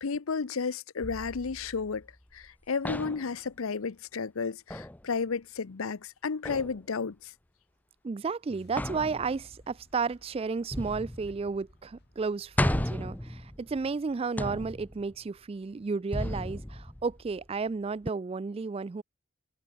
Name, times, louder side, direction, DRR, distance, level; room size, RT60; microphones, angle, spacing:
voice 1, 0.0-2.1 2.3-7.3, left 5 dB, 80° left, 0.7 m, -32 dB
sound 1, 1.0-2.5 2.8-3.4 4.7-5.0 6.4-6.8 8.8-9.6 10.7-11.7 12.0-12.1 12.6-13.9 14.4-15.2 16.1-17.5 18.1-18.2, left 1 dB, 10° left, 0.7 m, -34 dB
voice 2, 8.0-19.0, right 4 dB, 30° right, 0.3 m, -33 dB
sound 2, 8.5-14.7, equal, 50° left, 7.8 m, -59 dB
head